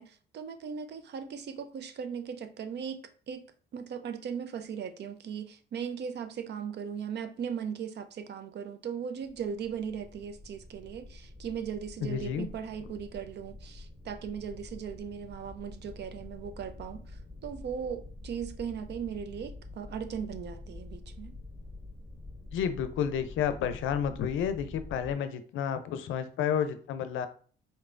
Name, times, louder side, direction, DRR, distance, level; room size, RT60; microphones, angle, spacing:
voice 1, 0.0-3.0 3.3-3.4 3.7-21.4, right 7 dB, 60° right, 0.6 m, -38 dB
sound 1, 9.2-25.2, left 2 dB, 15° right, 1.9 m, -47 dB
voice 2, 12.0-12.5 12.8-12.9 22.5-27.3, left 8 dB, 80° left, 0.5 m, -31 dB
4.2 x 3.3 x 2.5 m
cardioid pair, 90°, 20 cm